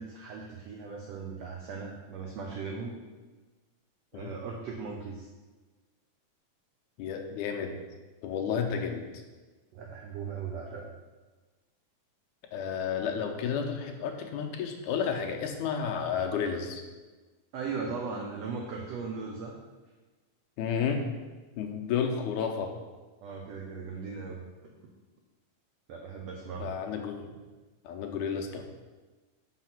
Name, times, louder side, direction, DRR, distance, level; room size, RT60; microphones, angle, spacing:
voice 1, 0.0-3.0 4.1-5.3 9.7-10.9 17.5-19.6 23.2-24.9 25.9-26.7, right 5 dB, 75° right, 0 dB, 1.6 m, -38 dB
voice 2, 7.0-7.8 8.2-9.1 12.5-16.8 20.6-21.0 21.6-22.7 26.6-27.4 27.8-28.6, left 7 dB, 80° left, 3 dB, 2.2 m, -31 dB
5.8 x 5.7 x 5.8 m, 1.3 s
omnidirectional pair, 3.7 m